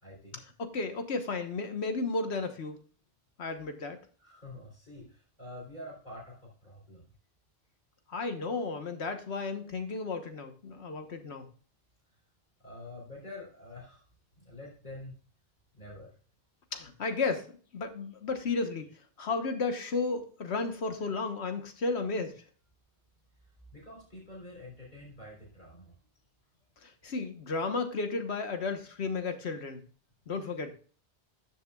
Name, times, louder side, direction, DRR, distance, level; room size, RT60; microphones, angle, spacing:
voice 1, 0.0-0.4 4.2-7.1 12.6-14.0 14.4-15.2 15.7-16.2 23.7-26.0, left 1 dB, 40° left, -3 dB, 3.7 m, -47 dB
voice 2, 0.6-2.8 3.4-4.0 8.1-11.5 16.7-22.4 26.8-29.8 30.3-30.7, left 3 dB, 70° left, 7 dB, 1.5 m, -33 dB
13.0 x 7.1 x 2.3 m, 0.41 s
omnidirectional pair, 1.2 m